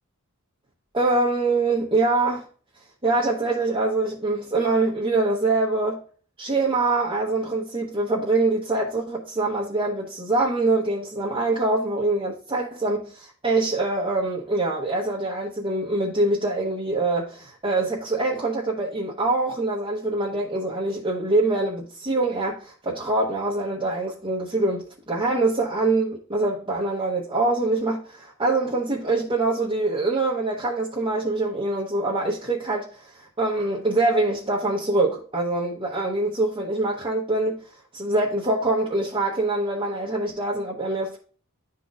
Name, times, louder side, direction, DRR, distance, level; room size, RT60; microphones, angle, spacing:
voice 1, 0.9-2.5 3.0-6.0 6.4-37.6 37.9-41.2, right 2 dB, 25° right, 0.9 m, -24 dB
11.5 x 4.0 x 2.4 m
head